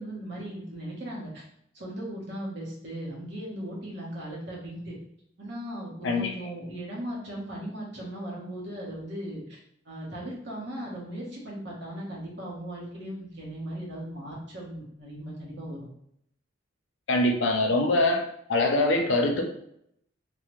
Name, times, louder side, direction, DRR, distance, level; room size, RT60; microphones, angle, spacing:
voice 1, 0.0-1.4 1.7-5.0 5.4-9.6 9.8-15.9, right 1 dB, 60° right, -5 dB, 1.1 m, -37 dB
voice 2, 17.1-18.2 18.5-19.4, left 2 dB, 65° left, 3 dB, 0.5 m, -23 dB
3.3 x 2.1 x 3.0 m, 0.72 s
head